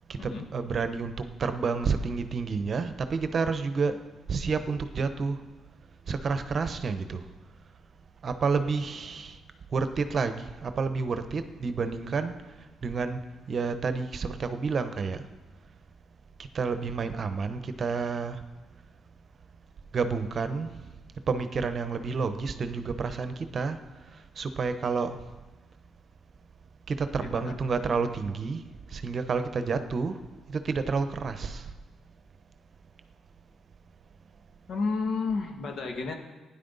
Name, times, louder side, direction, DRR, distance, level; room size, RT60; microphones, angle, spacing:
voice 1, 0.1-4.0 4.3-5.4 6.1-7.2 8.2-9.4 9.7-13.2 13.5-15.3 16.4-18.4 19.9-20.8 21.3-23.8 24.1-25.1 26.9-30.2 30.5-31.7, right 4 dB, 45° right, 10 dB, 0.8 m, -30 dB
voice 2, 27.2-27.6 34.7-36.1, left 4 dB, 65° left, 4 dB, 1.6 m, -31 dB
16.0 x 10.0 x 4.0 m, 1.2 s
cardioid pair, 90°, 0 cm